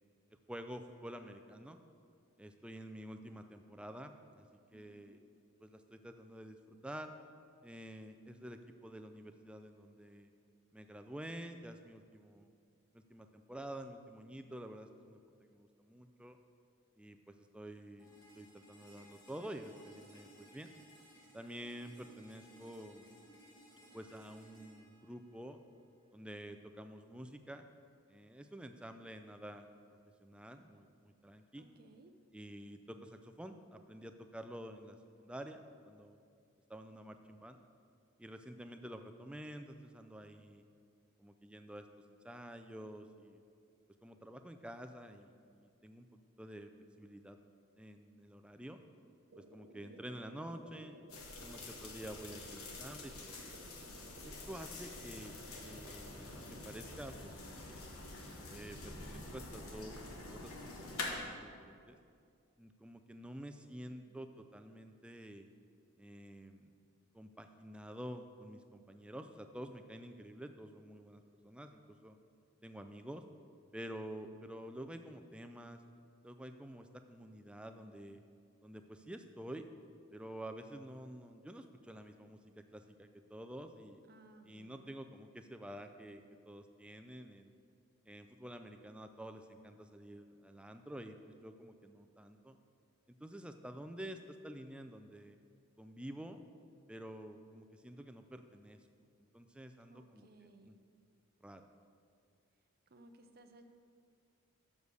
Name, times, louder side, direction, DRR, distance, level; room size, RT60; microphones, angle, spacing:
voice 1, 0.5-1.8 2.4-4.4 4.7-5.2 5.6-7.1 7.6-10.3 10.7-12.5 12.9-16.4 17.0-18.1 18.3-20.7 21.3-23.1 23.9-25.6 26.1-27.6 28.1-29.7 30.2-31.7 32.3-36.2 36.7-37.6 38.2-40.6 41.2-43.4 44.0-46.7 47.0-47.5 47.8-48.8 49.4-51.0 51.4-53.4 54.2-55.4 55.6-57.9 58.5-60.0 60.3-60.5 60.8-62.0 62.6-65.5 66.0-66.7 67.1-72.2 72.6-73.2 73.7-75.8 76.2-78.2 78.6-79.6 80.1-84.0 84.5-87.5 88.1-92.6 93.2-95.4 95.8-96.4 96.9-98.9 99.3-100.7 101.4-101.7, right 1 dB, 5° right, 7 dB, 0.3 m, -49 dB
voice 2, 4.7-5.2 31.6-32.1 49.8-50.1 63.6-64.2 84.1-85.0 99.9-100.8 102.9-103.6, right 2 dB, 45° right, 6 dB, 0.6 m, -61 dB
sound 1, 18.0-26.0, right 1 dB, 20° left, 1.4 m, -61 dB
sound 2, 49.3-56.8, right 1 dB, 80° right, 0.8 m, -57 dB
sound 3, 51.1-61.2, left 2 dB, 85° left, 1.2 m, -47 dB
7.1 x 6.3 x 6.7 m, 2.3 s
head